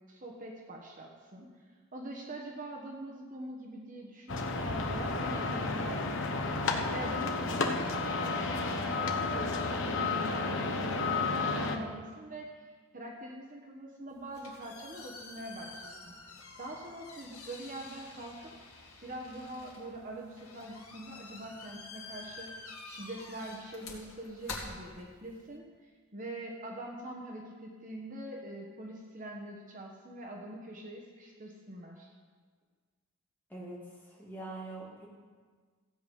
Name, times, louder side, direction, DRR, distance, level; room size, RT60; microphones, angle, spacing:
voice 1, 0.1-1.5 1.9-12.6 12.9-18.5 19.0-25.6 26.1-32.1, right 1 dB, 35° right, 0 dB, 1.2 m, -44 dB
sound 1, 4.3-11.8, left 3 dB, 55° left, 1.0 m, -32 dB
sound 2, 14.1-25.5, left 3 dB, 80° left, 2.3 m, -48 dB
voice 2, 34.1-35.1, right 2 dB, 10° left, -5 dB, 2.4 m, -43 dB
15.0 x 8.2 x 5.4 m, 1.5 s
head